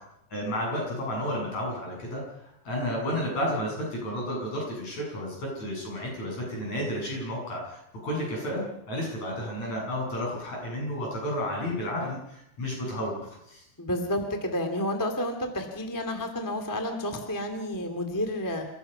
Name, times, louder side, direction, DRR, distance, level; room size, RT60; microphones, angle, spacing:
voice 1, 0.3-13.6, equal, 50° left, -2 dB, 9.4 m, -32 dB
voice 2, 13.8-18.6, left 1 dB, 10° left, 4 dB, 1.4 m, -30 dB
29.0 x 16.0 x 5.6 m, 0.81 s
omnidirectional pair, 4.2 m